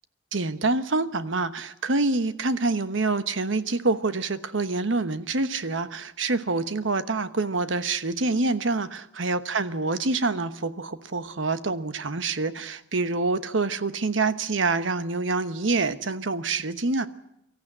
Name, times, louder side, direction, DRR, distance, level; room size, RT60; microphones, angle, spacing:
voice 1, 0.3-17.1, right 3 dB, 85° right, 11 dB, 1.1 m, -26 dB
24.0 x 14.5 x 8.9 m, 0.84 s
head